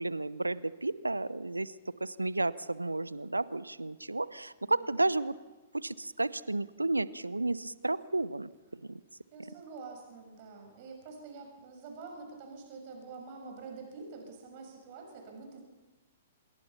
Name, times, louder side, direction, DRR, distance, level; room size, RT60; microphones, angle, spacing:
voice 1, 0.0-1.7 2.0-5.3 5.7-9.0, right 2 dB, 80° right, 19 dB, 0.8 m, -32 dB
voice 2, 4.7-5.2 9.3-15.6, right 4 dB, 40° right, 3 dB, 6.6 m, -47 dB
27.0 x 22.5 x 5.8 m, 1.2 s
figure-of-eight pair, 110°, 0 cm